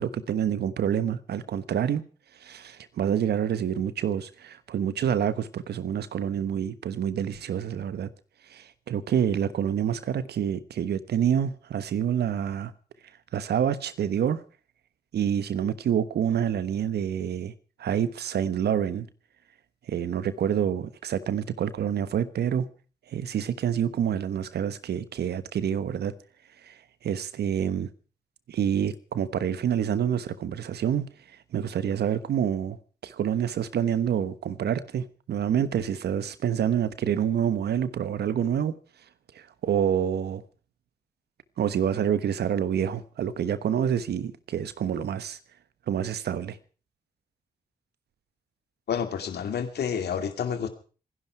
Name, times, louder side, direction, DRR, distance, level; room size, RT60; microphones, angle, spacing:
voice 1, 0.0-2.0 2.4-8.1 8.5-12.7 13.3-14.4 15.1-17.5 17.8-19.1 19.9-22.7 23.1-26.1 26.6-26.7 27.0-27.9 28.5-31.1 31.5-32.8 33.0-38.7 39.3-40.4 41.6-45.4 45.9-46.6, right 9 dB, 75° right, 1.2 m, -27 dB
voice 2, 48.9-50.7, left 7 dB, 75° left, 2.5 m, -29 dB
26.0 x 11.0 x 4.7 m
supercardioid pair, 45°, 17 cm